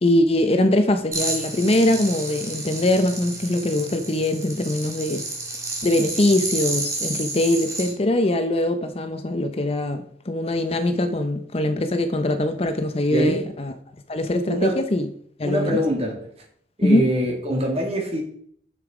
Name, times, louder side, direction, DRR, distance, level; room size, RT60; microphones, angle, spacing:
voice 1, 0.0-5.2 5.8-13.7 14.1-15.1 15.4-15.8 16.8-17.0, left 1 dB, 35° left, 0.6 m, -22 dB
sound 1, 1.1-7.9, right 2 dB, 20° right, 1.9 m, -30 dB
voice 2, 13.1-13.5 14.5-14.8 15.4-16.3 16.8-18.2, right 1 dB, 35° right, 2.3 m, -24 dB
7.0 x 6.7 x 4.9 m
head